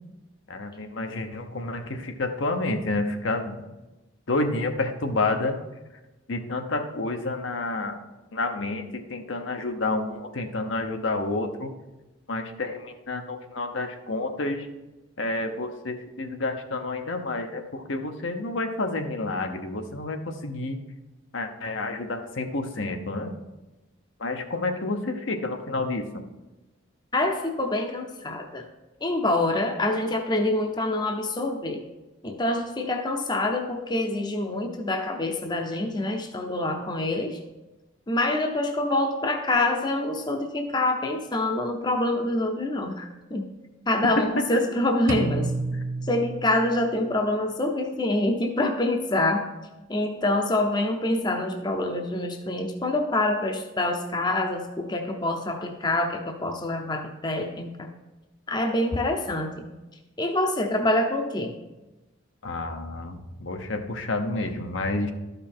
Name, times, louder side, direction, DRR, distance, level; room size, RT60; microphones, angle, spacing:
voice 1, 0.5-3.6 4.3-5.6 6.3-8.0 8.3-11.7 12.3-14.7 15.2-20.8 21.3-23.3 24.2-26.2 44.2-44.6 62.4-65.1, left 2 dB, 70° left, 5 dB, 0.9 m, -29 dB
voice 2, 27.1-28.7 29.0-31.8 32.2-37.4 38.1-43.4 43.9-45.5 46.0-49.5 49.9-57.9 58.5-59.7 60.2-61.5, left 2 dB, 20° left, 3 dB, 0.7 m, -26 dB
sound 1, 45.1-47.0, right 2 dB, 80° right, 0.7 m, -30 dB
12.5 x 5.4 x 4.4 m, 1.1 s
head